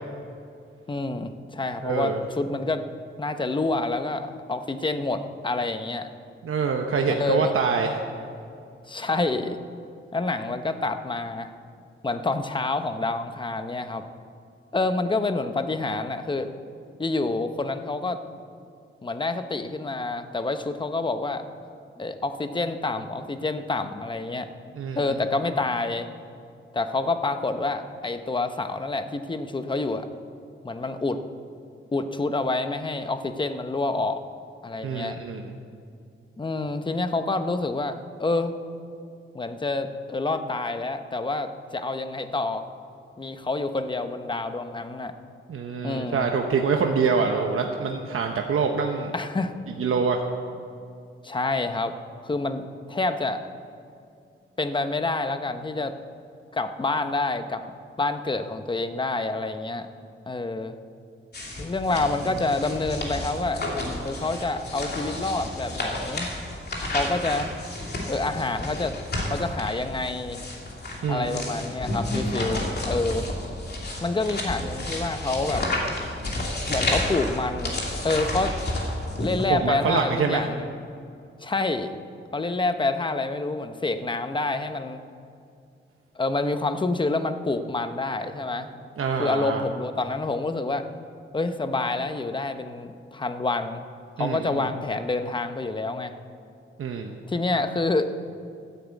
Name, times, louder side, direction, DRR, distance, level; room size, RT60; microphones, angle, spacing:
voice 1, 0.9-2.8 3.2-6.1 7.1-7.5 8.9-9.6 10.1-11.5 12.0-14.0 14.7-16.5 17.0-18.2 19.0-21.4 22.0-24.5 24.9-26.1 26.7-30.1 30.6-31.2 31.9-34.2 34.6-35.2 36.4-38.5 39.3-42.7 43.2-45.1 45.8-46.3 49.1-49.5 51.2-51.9 52.2-53.4 54.6-56.0 56.5-57.6 58.0-59.9 60.3-60.8 61.6-63.6 64.0-66.3 66.8-67.5 68.1-69.0 69.3-70.4 71.1-73.3 74.0-75.7 76.7-78.6 79.2-80.7 81.4-81.9 82.3-85.0 86.2-88.7 89.2-90.9 91.3-93.8 94.2-96.1 97.3-98.1, left 3 dB, 20° left, 9 dB, 0.8 m, -27 dB
voice 2, 1.8-2.2 6.4-8.0 24.7-25.0 34.8-35.5 45.5-49.1 49.8-50.2 71.0-71.5 79.5-80.5 89.0-89.7 94.2-94.6 96.8-97.2, right 5 dB, 85° right, 3 dB, 0.9 m, -25 dB
sound 1, 61.3-79.5, left 1 dB, 50° left, 2.8 m, -31 dB
13.0 x 10.5 x 8.2 m, 2.4 s
wide cardioid pair, 145°, 21 cm